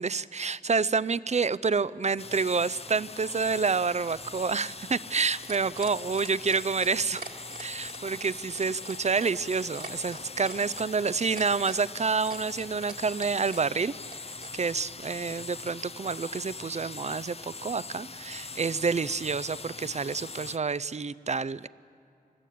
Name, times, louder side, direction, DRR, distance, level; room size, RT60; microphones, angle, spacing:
voice 1, 0.0-7.2 7.6-13.9 14.3-21.7, right 5 dB, 45° right, 18 dB, 0.5 m, -28 dB
sound 1, 2.2-20.6, left 4 dB, 40° left, 0.6 m, -42 dB
sound 2, 4.0-14.5 15.7-15.8, right 3 dB, 65° right, 2.0 m, -44 dB
27.5 x 13.5 x 8.5 m, 2.8 s
wide cardioid pair, 55°, 16 cm